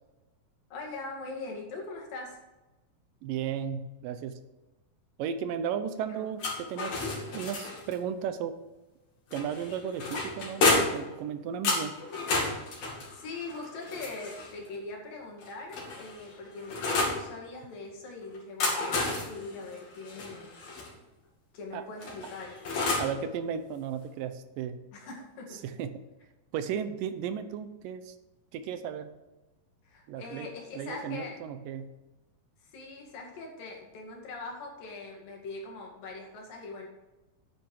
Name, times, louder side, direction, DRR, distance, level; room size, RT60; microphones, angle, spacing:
voice 1, 0.7-2.4 6.1-6.3 13.1-20.6 21.5-22.6 24.9-25.6 29.8-31.4 32.6-36.9, left 3 dB, 80° left, -1 dB, 4.0 m, -42 dB
voice 2, 3.2-4.4 5.2-7.1 7.3-8.6 9.3-12.0 21.7-21.8 23.0-24.8 25.6-26.0 26.5-28.2 28.5-29.1 30.1-31.9, right 8 dB, 80° right, 10 dB, 2.4 m, -35 dB
sound 1, 6.4-8.0 9.3-11.1 11.6-14.6 15.4-17.2 18.3-20.9 22.0-23.2, left 3 dB, 55° left, 3.7 m, -31 dB
10.0 x 9.0 x 4.7 m, 1.1 s
omnidirectional pair, 3.9 m